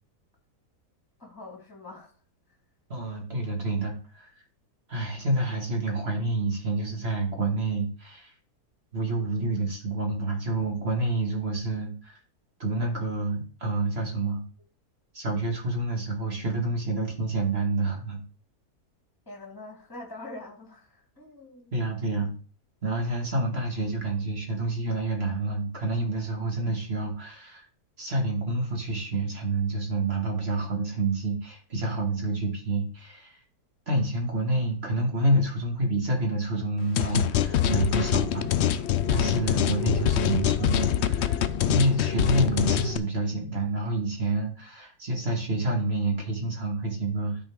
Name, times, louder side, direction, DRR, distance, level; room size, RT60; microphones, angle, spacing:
voice 1, 1.2-2.1 19.3-21.8, left 2 dB, 15° left, 0 dB, 2.0 m, -44 dB
voice 2, 2.9-4.3 4.9-8.3 8.9-12.2 12.6-14.4 15.1-18.2 21.7-22.3 22.8-27.6 28.0-33.4 33.9-38.8 39.1-41.4 41.7-47.4, right 2 dB, 40° right, 1 dB, 2.1 m, -28 dB
sound 1, 37.0-43.0, left 10 dB, 75° left, 0.6 m, -25 dB
12.0 x 4.6 x 3.6 m, 0.39 s
omnidirectional pair, 1.7 m